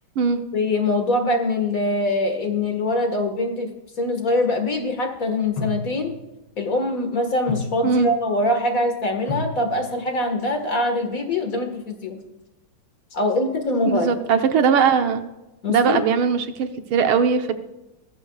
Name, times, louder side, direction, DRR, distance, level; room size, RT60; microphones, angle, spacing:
voice 1, 0.5-3.7 4.0-6.1 6.6-12.2 13.1-14.1 15.6-16.0, left 2 dB, 45° left, 5 dB, 2.0 m, -23 dB
sound 1, 5.6-6.3 7.2-8.2 8.8-8.9 9.3-10.3, left 3 dB, 70° left, 3.0 m, -32 dB
voice 2, 13.8-15.2 15.7-17.5, right 6 dB, 80° right, 7 dB, 1.9 m, -20 dB
19.0 x 14.5 x 2.4 m, 0.98 s
omnidirectional pair, 2.3 m